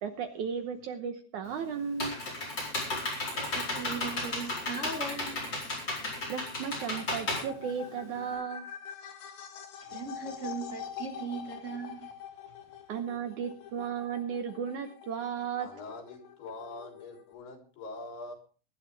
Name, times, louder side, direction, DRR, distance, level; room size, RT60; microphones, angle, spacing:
voice 1, 0.0-2.2 6.3-8.7 12.9-15.7, right 7 dB, 65° right, 2.0 m, -35 dB
Computer keyboard, 1.4-8.3, left 2 dB, 25° left, 5.0 m, -34 dB
voice 2, 3.3-5.7 9.8-12.1, right 4 dB, 45° right, 0.9 m, -39 dB
sound 1, 6.1-17.3, left 9 dB, 70° left, 3.4 m, -46 dB
voice 3, 15.6-18.3, left 2 dB, 90° left, 5.9 m, -43 dB
21.0 x 11.5 x 3.4 m
omnidirectional pair, 4.5 m